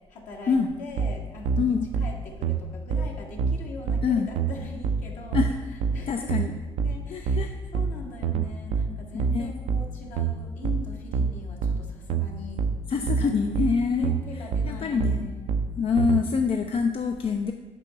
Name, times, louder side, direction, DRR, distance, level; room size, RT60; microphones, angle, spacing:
voice 1, 0.1-5.4 5.9-12.6 13.0-13.3 13.9-15.5, left 2 dB, 60° left, -1 dB, 1.5 m, -41 dB
sound 1, 1.0-16.2, right 5 dB, 60° right, 0.5 m, -27 dB
voice 2, 6.1-6.5 7.1-7.5 9.1-9.5 12.9-15.2 15.8-17.5, left 5 dB, 40° left, 5 dB, 0.5 m, -25 dB
6.1 x 5.3 x 6.7 m, 1.3 s
figure-of-eight pair, 40°, 14 cm